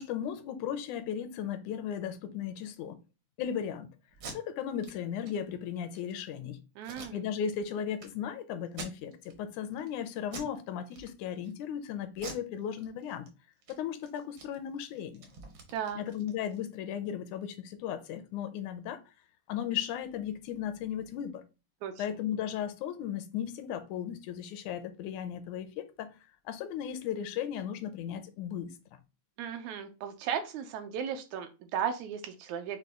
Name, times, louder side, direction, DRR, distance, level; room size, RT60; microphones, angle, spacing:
voice 1, 0.0-3.0 3.4-3.9 4.3-6.6 7.1-13.3 13.7-15.3 16.0-19.0 19.5-21.4 22.0-26.1 26.5-28.7, left 9 dB, 80° left, 2.0 m, -36 dB
Packing tape duct tape, 4.1-4.4 4.8-4.9 5.2-5.3 5.8-6.1 6.8-7.6 8.0-8.1 8.7-9.3 9.7-9.9 10.3-10.6 10.9-11.5 12.1-13.3 13.6-13.7 14.0-16.6, right 3 dB, 65° right, 1.2 m, -46 dB
voice 2, 6.8-7.2 15.7-16.0 21.8-22.0 29.4-32.8, right 8 dB, 80° right, 1.9 m, -35 dB
6.6 x 2.2 x 3.6 m
omnidirectional pair, 3.4 m